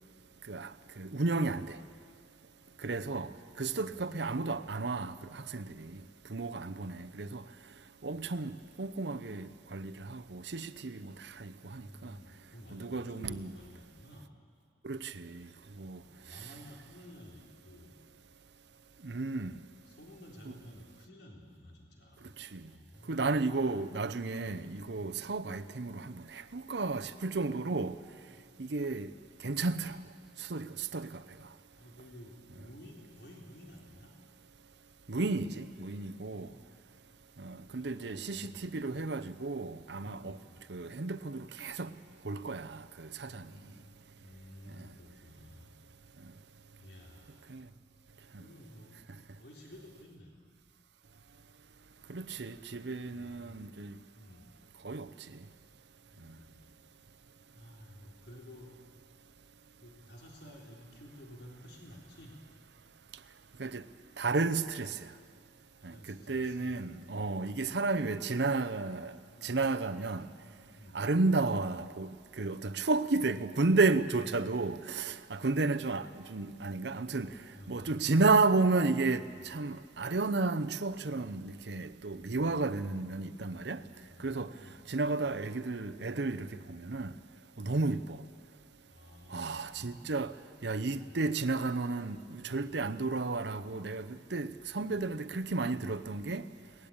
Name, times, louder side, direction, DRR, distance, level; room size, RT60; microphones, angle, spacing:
voice 1, 1.0-1.8 2.8-3.3 3.6-6.0 6.3-7.4 8.0-12.2 12.7-13.5 14.8-15.5 15.8-16.0 19.0-19.5 20.5-20.6 22.5-22.6 23.1-28.0 28.6-29.1 29.4-30.0 30.4-31.2 35.1-36.5 37.4-40.4 40.7-41.9 42.2-43.5 47.5-47.6 52.1-53.9 54.8-55.1 63.6-63.8 64.2-65.0 65.8-69.1 69.4-70.3 70.9-72.1 72.4-77.3 77.7-83.8 84.2-84.5 84.9-87.1 87.6-88.2 89.3-90.3 90.6-96.4, right 3 dB, 75° right, 0.8 m, -32 dB
voice 2, 2.4-3.2 3.8-4.1 8.1-8.3 11.7-14.3 15.8-17.9 19.9-23.3 24.9-25.2 28.2-28.4 31.8-34.1 36.3-36.7 37.7-39.0 39.9-40.6 43.2-43.8 44.2-45.7 46.8-47.6 48.3-50.3 53.0-53.7 54.1-54.5 56.1-56.7 57.5-58.7 59.8-62.4 65.7-67.7 69.3-69.6 70.4-71.0 76.3-77.9 79.3-79.6 82.2-83.1 83.8-84.8 86.5-86.7 87.6-87.8 88.9-90.1 91.0-91.2 92.4-92.8 93.5-93.8 94.8-95.1, equal, 70° left, 3.9 m, -54 dB
22.5 x 19.5 x 8.9 m
head